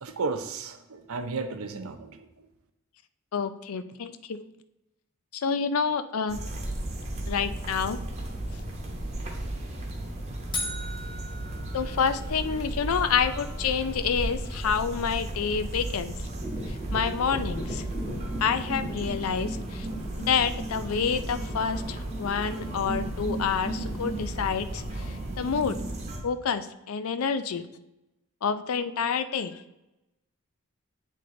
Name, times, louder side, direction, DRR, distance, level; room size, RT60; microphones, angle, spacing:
voice 1, 0.0-2.3, right 4 dB, 80° right, 8 dB, 0.6 m, -33 dB
voice 2, 3.3-4.5 5.3-6.4 7.3-8.0 11.7-16.1 16.7-17.8 18.4-19.9 20.3-25.8 26.2-27.7 28.4-29.6, left 6 dB, 80° left, 12 dB, 0.5 m, -28 dB
sound 1, 6.3-26.2, right 1 dB, 30° right, 1.0 m, -35 dB
sound 2, 10.5-12.7, left 1 dB, 20° left, 0.7 m, -37 dB
sound 3, 16.3-24.1, right 1 dB, 10° right, 1.5 m, -37 dB
8.4 x 3.6 x 3.8 m, 0.95 s
head